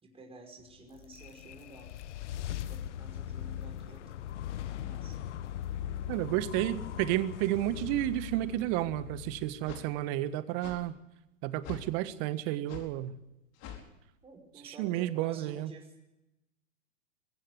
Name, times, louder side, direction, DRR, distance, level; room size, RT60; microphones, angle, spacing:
voice 1, 0.0-1.9 2.7-4.4 4.7-5.2 14.2-16.0, right 2 dB, 15° right, 2 dB, 5.5 m, -51 dB
sound 1, 0.7-10.0, left 11 dB, 60° left, 1.2 m, -40 dB
voice 2, 6.1-10.9 11.4-13.1 14.8-15.7, right 14 dB, 40° right, 13 dB, 1.6 m, -31 dB
sound 2, 8.8-8.9 9.7-9.9 10.6-10.8 11.6-11.9 12.7-12.9 13.6-13.9, left 9 dB, 35° left, 4.7 m, -44 dB
23.5 x 16.0 x 8.0 m, 0.92 s
hypercardioid pair, 110°, 40 cm